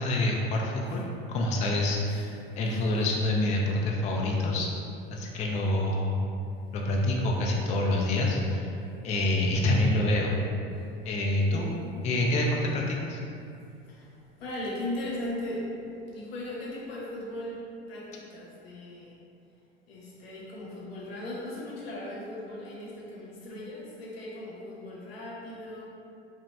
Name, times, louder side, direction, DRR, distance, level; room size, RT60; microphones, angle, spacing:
voice 1, 0.0-4.7 5.1-6.3 6.7-8.7 9.0-10.4 11.1-11.7 12.0-13.2, left 1 dB, 25° left, -1 dB, 0.3 m, -27 dB
voice 2, 11.5-12.0 13.8-19.2 19.9-25.8, left 1 dB, 90° left, -5 dB, 0.8 m, -38 dB
2.9 x 2.5 x 2.2 m, 2.6 s
hypercardioid pair, 90°, 29 cm